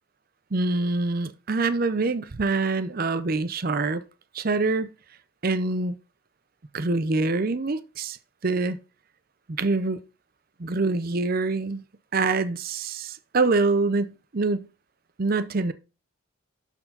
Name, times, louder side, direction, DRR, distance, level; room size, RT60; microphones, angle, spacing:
voice 1, 0.5-4.0 4.3-4.9 5.4-5.9 6.7-8.2 8.4-8.8 9.5-10.0 10.6-11.8 12.1-14.7 15.2-15.7, right 3 dB, 45° right, 0.6 m, -25 dB
11.5 x 4.5 x 4.0 m
head